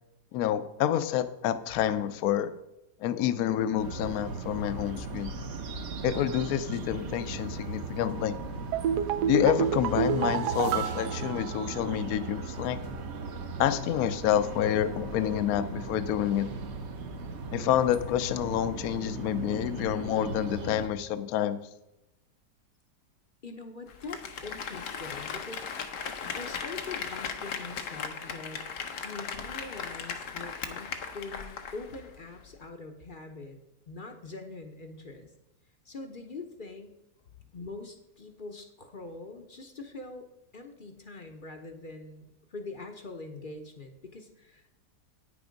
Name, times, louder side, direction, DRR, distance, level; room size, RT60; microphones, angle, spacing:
voice 1, 0.3-2.5 3.0-5.3 6.0-8.4 9.3-12.8 13.6-16.5 17.5-21.6, left 10 dB, 70° left, 12 dB, 1.0 m, -28 dB
sound 1, 3.8-20.9, right 3 dB, 50° right, 1.0 m, -38 dB
sound 2, 8.7-12.2 12.4-12.5, right 9 dB, 80° right, 1.2 m, -29 dB
voice 2, 23.4-25.7 26.3-28.6 29.0-33.6 33.9-35.3 35.8-36.9 37.5-44.7, left 3 dB, 40° left, 5 dB, 0.7 m, -43 dB
Applause, 23.9-32.1 32.4-32.5, left 6 dB, 90° left, 1.5 m, -37 dB
9.4 x 7.0 x 5.1 m, 0.92 s
omnidirectional pair, 1.8 m